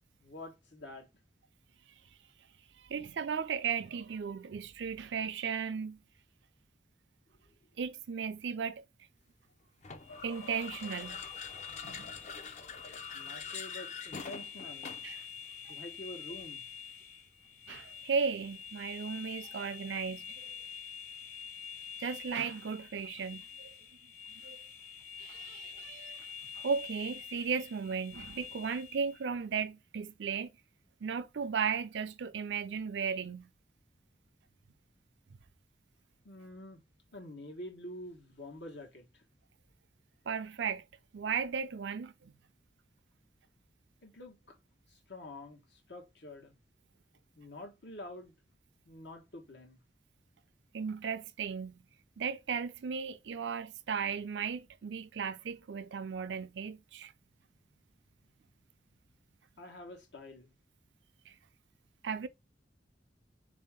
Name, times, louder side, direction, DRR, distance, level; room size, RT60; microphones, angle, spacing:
voice 1, 0.2-1.1 13.1-14.9 15.7-16.6 36.2-36.8 37.1-39.2 44.0-44.6 44.9-46.6 47.4-48.3 48.9-49.8 59.6-60.5, left 1 dB, 75° left, 1.3 m, -47 dB
voice 2, 2.8-6.0 7.8-8.8 10.2-11.2 11.8-12.1 15.0-15.2 15.6-15.7 17.7-20.4 22.0-23.8 24.3-24.6 25.2-30.5 31.0-33.5 40.3-40.9 41.1-42.3 50.7-51.8 52.2-57.1 61.3-61.4 62.0-62.3, right 6 dB, 85° right, 0.4 m, -36 dB
sound 1, 9.8-15.2, left 5 dB, 40° left, 0.6 m, -45 dB
sound 2, 10.0-29.2, left 6 dB, 55° left, 1.2 m, -47 dB
3.8 x 2.7 x 3.4 m
head